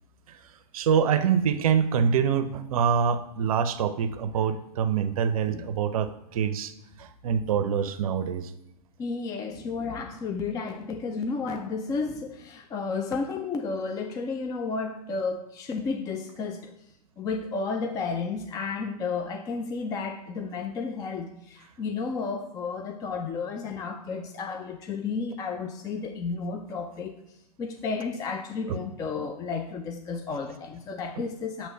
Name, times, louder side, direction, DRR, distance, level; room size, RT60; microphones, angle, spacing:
voice 1, 0.7-6.7 7.0-8.5 28.7-28.8 29.2-29.3, right 7 dB, 60° right, 11 dB, 0.5 m, -25 dB
voice 2, 9.0-16.7 17.2-27.2 27.6-31.7, left 4 dB, 20° left, 6 dB, 0.4 m, -32 dB
7.7 x 3.0 x 5.5 m, 0.85 s
hypercardioid pair, 115°, 20 cm